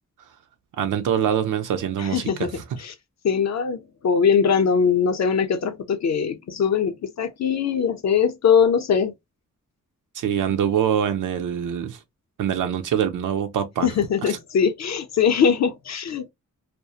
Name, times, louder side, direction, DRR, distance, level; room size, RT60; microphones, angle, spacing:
voice 1, 0.8-2.6 10.1-12.0 12.4-13.9 14.2-14.4, right 9 dB, 90° right, 0.5 m, -24 dB
voice 2, 2.0-2.5 2.8-2.9 3.2-9.1 13.8-16.3, left 6 dB, 60° left, 0.6 m, -21 dB
2.4 x 2.1 x 2.7 m
wide cardioid pair, 120°, 30 cm